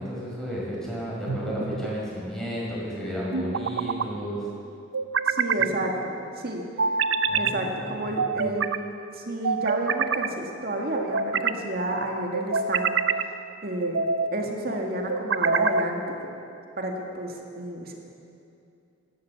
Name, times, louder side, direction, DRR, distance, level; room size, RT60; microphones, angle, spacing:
voice 1, 0.0-4.5 5.6-5.7 7.3-7.8 8.3-8.5, equal, 5° left, -6 dB, 5.2 m, -33 dB
sound 1, 1.3-1.9 3.3-4.1 4.9-5.7 6.8-7.6 8.2-8.8 9.4-10.3 10.9-11.6 12.3-13.3 13.8-14.3 15.1-15.9, right 5 dB, 85° right, 0.6 m, -26 dB
voice 2, 5.3-7.0 7.4-8.7 9.1-16.3 16.8-17.9, right 1 dB, 50° right, 1 dB, 2.0 m, -31 dB
16.5 x 12.5 x 7.1 m, 2.6 s
head